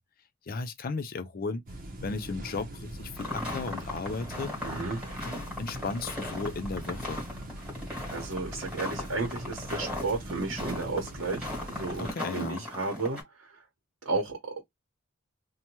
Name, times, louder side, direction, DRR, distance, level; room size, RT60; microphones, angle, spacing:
voice 1, 0.5-1.6 2.0-4.6 5.2-7.2 12.0-12.6, left 4 dB, 45° left, 0.5 m, -35 dB
sound 1, 1.7-12.1, equal, 45° right, 0.7 m, -41 dB
sound 2, 3.2-13.2, left 1 dB, 5° right, 1.4 m, -38 dB
voice 2, 4.6-5.0 8.1-13.6 14.0-14.6, right 3 dB, 90° right, 0.9 m, -33 dB
2.7 x 2.2 x 2.9 m
head